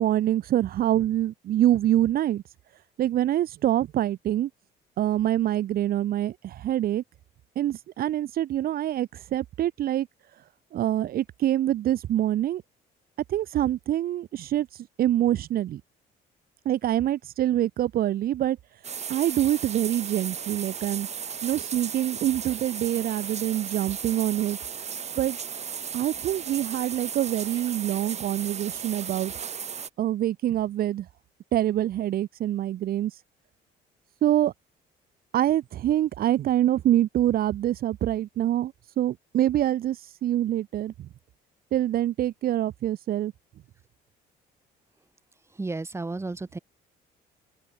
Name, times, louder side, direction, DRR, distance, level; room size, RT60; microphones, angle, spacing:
voice 1, 0.0-2.4 3.0-4.5 5.0-7.0 7.5-10.1 10.7-12.6 13.3-14.7 15.0-15.8 16.6-18.6 19.1-21.1 21.4-24.6 25.2-25.4 25.9-29.3 30.0-31.1 31.5-33.1 34.2-34.5 35.3-40.9 41.7-43.3, right 12 dB, 60° right, 1.7 m, -25 dB
sound 1, 18.8-29.9, right 7 dB, 40° right, 5.8 m, -35 dB
voice 2, 45.6-46.6, right 3 dB, 15° right, 3.0 m, -32 dB
open air
cardioid pair, 110°, 17 cm